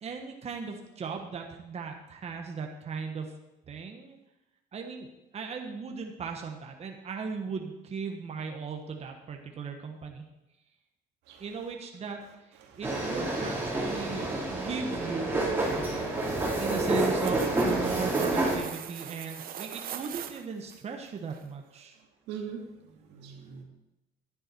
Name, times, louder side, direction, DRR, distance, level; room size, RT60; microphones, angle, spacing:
voice 1, 0.0-3.3 3.7-4.2 4.7-5.1 5.3-10.3 11.4-15.3 16.5-22.0, right 5 dB, 40° right, 3 dB, 1.4 m, -37 dB
sound 1, 12.8-18.6, right 2 dB, 15° right, 3.9 m, -28 dB
voice 2, 15.8-16.6 22.3-23.6, right 6 dB, 90° right, 2 dB, 2.2 m, -43 dB
sound 2, 17.0-20.8 21.3-21.4, right 10 dB, 60° right, 0.9 m, -42 dB
11.0 x 10.0 x 4.5 m, 0.95 s
cardioid pair, 110°, 17 cm